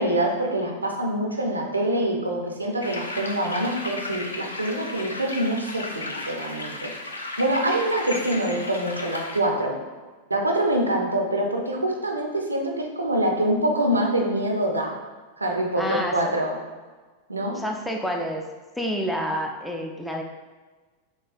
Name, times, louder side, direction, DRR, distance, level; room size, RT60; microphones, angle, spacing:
voice 1, 0.0-6.9 7.4-9.8 10.3-15.0 15.4-16.6 17.3-17.6, right 1 dB, 80° right, 1 dB, 0.5 m, -25 dB
sound 1, 2.8-9.4, left 2 dB, 75° left, 0.4 m, -35 dB
voice 2, 15.8-16.2 17.5-18.5 18.8-20.2, equal, 5° left, 1 dB, 0.4 m, -28 dB
6.0 x 2.2 x 2.5 m, 1.3 s
figure-of-eight pair, 90°, 0 cm